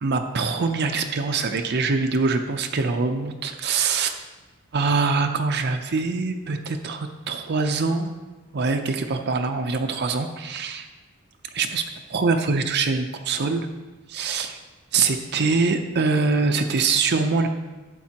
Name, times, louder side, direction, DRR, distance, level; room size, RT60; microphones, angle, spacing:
voice 1, 0.0-4.1 4.7-8.1 8.5-10.9 11.5-11.8 12.1-13.7 14.1-14.6 14.9-17.5, right 4 dB, 50° right, 5 dB, 0.6 m, -24 dB
11.5 x 8.5 x 2.9 m, 1.2 s
head